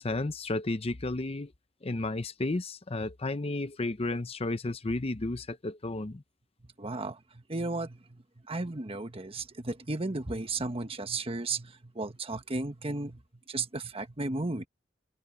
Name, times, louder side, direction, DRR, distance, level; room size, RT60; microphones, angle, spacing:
voice 1, 0.0-1.5 1.8-6.2, left 2 dB, 35° left, 0.7 m, -32 dB
voice 2, 6.8-13.2 13.5-14.7, right 2 dB, 30° right, 1.4 m, -34 dB
open air
head